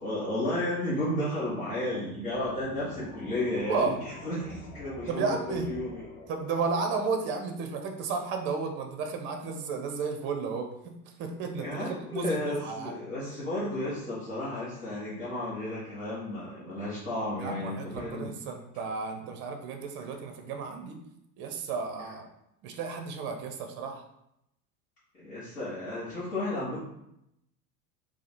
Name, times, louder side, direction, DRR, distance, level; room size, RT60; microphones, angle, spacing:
voice 1, 0.0-6.0 11.6-18.3 25.2-26.8, left 1 dB, 75° left, -10 dB, 1.1 m, -33 dB
sound 1, 2.3-7.6, left 2 dB, 45° left, 0.8 m, -47 dB
voice 2, 3.5-4.0 5.1-5.7 6.3-10.9 11.2-11.9 12.1-13.3 17.4-21.0 21.4-22.3 22.6-24.0, right 4 dB, 25° right, 4 dB, 0.4 m, -33 dB
2.7 x 2.4 x 4.1 m, 0.81 s
figure-of-eight pair, 75°, 45 cm